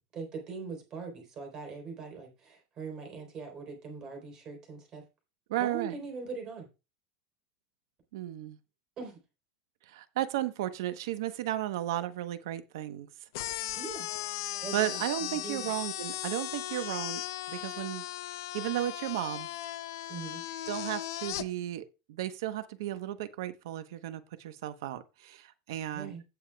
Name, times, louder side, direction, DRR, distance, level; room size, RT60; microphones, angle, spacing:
voice 1, 0.1-5.0 5.6-6.7 9.0-9.2 13.7-14.1 14.6-15.7 20.1-20.4 25.9-26.2, right 4 dB, 30° right, 3.7 m, -41 dB
voice 2, 5.5-6.0 8.1-8.6 9.9-13.1 14.7-17.2 17.5-19.5 20.7-26.1, right 13 dB, 85° right, 1.0 m, -34 dB
sound 1, 13.3-21.5, left 15 dB, 80° left, 0.6 m, -37 dB
16.5 x 6.9 x 2.3 m
supercardioid pair, 165°, 2 cm